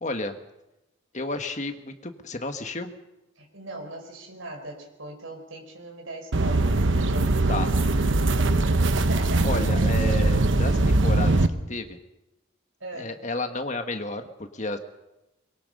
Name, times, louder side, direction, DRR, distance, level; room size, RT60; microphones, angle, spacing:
voice 1, 0.0-0.4 1.1-2.9 7.5-7.7 9.4-12.0 12.9-14.8, left 2 dB, 35° left, 6 dB, 1.6 m, -32 dB
voice 2, 3.4-9.5 12.8-13.2, right 1 dB, 90° right, 2 dB, 5.3 m, -40 dB
sound 1, 6.3-11.5, right 2 dB, 70° right, 1.0 m, -21 dB
23.5 x 22.0 x 5.5 m, 0.94 s
head